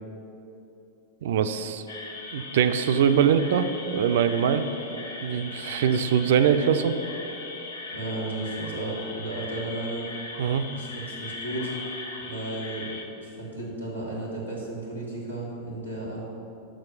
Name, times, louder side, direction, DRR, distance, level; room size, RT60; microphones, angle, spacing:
voice 1, 1.2-1.8 2.3-7.0 10.4-10.6, right 8 dB, 55° right, 10 dB, 0.3 m, -23 dB
sound 1, 1.9-13.0, left 3 dB, 70° left, 0.8 m, -39 dB
voice 2, 7.9-10.1 10.7-11.7 12.2-12.9 13.2-16.3, right 2 dB, 90° left, -5 dB, 1.6 m, -34 dB
6.3 x 6.1 x 5.4 m, 2.9 s
figure-of-eight pair, 90°, 0 cm